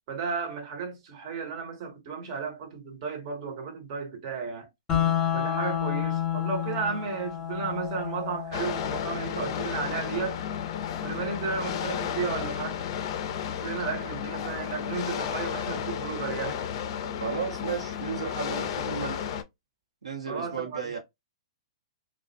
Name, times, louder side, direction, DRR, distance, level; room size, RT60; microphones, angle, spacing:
voice 1, 0.1-4.7 5.3-10.4 11.0-12.8 13.6-16.6 20.3-20.8, right 5 dB, 45° right, 0.8 m, -33 dB
sound 1, 4.9-14.9, left 10 dB, 20° left, 0.7 m, -33 dB
sound 2, 8.5-19.4, left 8 dB, 50° left, 0.4 m, -33 dB
voice 2, 17.2-19.2 20.0-21.0, right 6 dB, 85° right, 0.7 m, -34 dB
2.4 x 2.1 x 2.5 m
hypercardioid pair, 125°, 3 cm